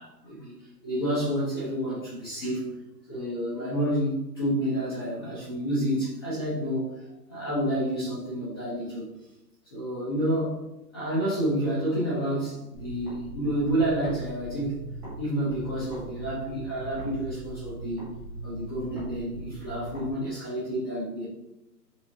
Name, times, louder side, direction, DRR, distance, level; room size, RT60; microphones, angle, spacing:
voice 1, 0.0-2.6 3.1-6.9 7.3-9.1 9.7-10.6 10.9-14.8 15.2-18.1 18.4-21.2, right 1 dB, 15° left, -10 dB, 0.8 m, -29 dB
sound 1, 12.7-15.2 15.5-20.1, right 2 dB, 5° right, 1.1 m, -39 dB
5.7 x 2.6 x 2.7 m, 0.93 s
hypercardioid pair, 160°, 50 cm